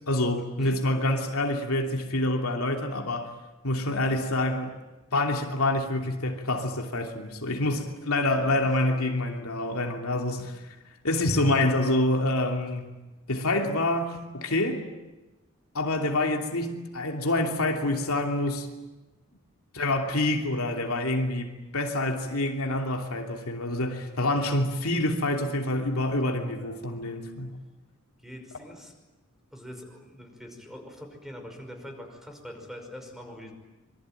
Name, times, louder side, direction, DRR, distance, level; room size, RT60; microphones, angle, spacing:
voice 1, 0.1-3.3 3.6-4.8 5.1-10.7 11.0-12.9 13.3-14.9 15.7-18.7 19.7-27.6, left 1 dB, 75° left, 3.0 m, -27 dB
voice 2, 26.6-27.3 28.2-28.9 29.5-33.5, equal, ahead, 5.6 m, -44 dB
26.0 x 24.5 x 9.2 m
head